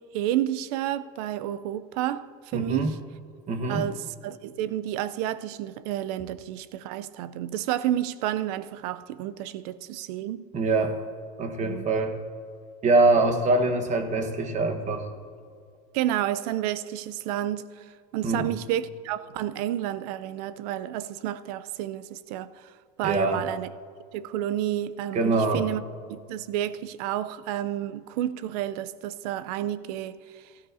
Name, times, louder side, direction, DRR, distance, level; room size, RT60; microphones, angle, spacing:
voice 1, 0.1-3.0 3.7-10.5 11.6-11.9 15.9-17.8 18.1-22.7 23.0-23.7 24.1-25.8 26.1-30.4, right 12 dB, 75° right, 0.5 m, -30 dB
voice 2, 2.5-2.9 3.5-3.9 10.5-11.0 11.4-12.2 12.8-15.1 18.2-18.5 23.0-23.4 25.1-25.7, right 3 dB, 35° right, 1.2 m, -24 dB
17.0 x 13.0 x 2.7 m
supercardioid pair, 115°, 20 cm